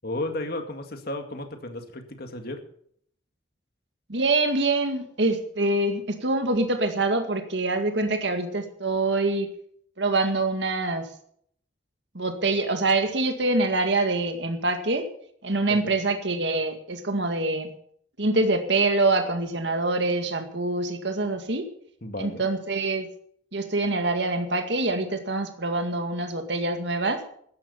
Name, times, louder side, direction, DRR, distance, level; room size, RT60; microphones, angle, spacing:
voice 1, 0.0-2.6 15.8-16.0 22.0-22.4, left 1 dB, 55° left, 6 dB, 2.1 m, -33 dB
voice 2, 4.1-9.5 10.0-11.1 12.1-15.1 15.4-17.7 18.2-21.7 22.2-23.1 23.5-27.2, right 2 dB, 65° right, 6 dB, 2.0 m, -25 dB
13.5 x 10.5 x 7.1 m, 0.64 s
head